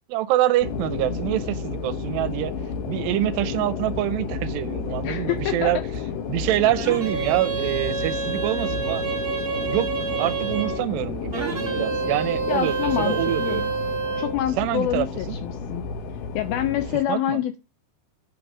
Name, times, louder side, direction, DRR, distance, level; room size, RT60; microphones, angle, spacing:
voice 1, 0.1-2.5 2.9-5.8 6.3-9.0 9.7-13.7 14.6-15.4 17.1-17.4, right 14 dB, 85° right, 2.8 m, -25 dB
sound 1, 0.6-17.0, left 5 dB, 70° left, 2.4 m, -31 dB
voice 2, 5.0-5.8 12.5-13.6 14.2-15.9 16.4-17.6, left 12 dB, 85° left, 2.1 m, -26 dB
sound 2, 6.8-10.8 11.3-14.4, right 6 dB, 40° right, 0.8 m, -28 dB
8.5 x 5.1 x 7.1 m
omnidirectional pair, 4.8 m